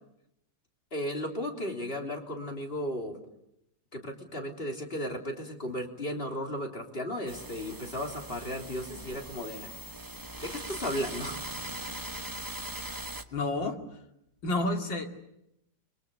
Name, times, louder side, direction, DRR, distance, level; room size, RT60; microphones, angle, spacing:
voice 1, 0.9-3.2 3.9-9.7 10.4-11.5, equal, 30° left, 2 dB, 3.7 m, -35 dB
sound 1, 7.3-13.2, right 2 dB, 15° right, 1.0 m, -40 dB
voice 2, 13.3-13.8 14.4-15.1, left 2 dB, 85° left, 4 dB, 3.4 m, -30 dB
30.0 x 24.0 x 7.0 m, 0.81 s
omnidirectional pair, 2.0 m